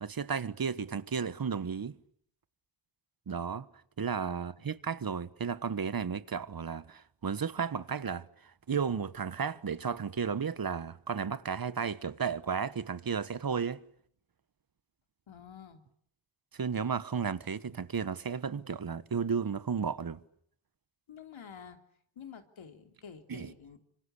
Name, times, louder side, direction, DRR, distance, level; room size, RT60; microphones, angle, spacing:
voice 1, 0.0-2.0 3.3-3.7 4.0-8.3 8.7-13.8 16.5-20.2 23.3-23.5, right 6 dB, 50° right, 1.3 m, -33 dB
voice 2, 4.3-4.7 15.3-15.8 21.1-21.8 22.1-23.8, left 7 dB, 85° left, 3.3 m, -49 dB
26.0 x 25.5 x 8.3 m
cardioid pair, 65°, 46 cm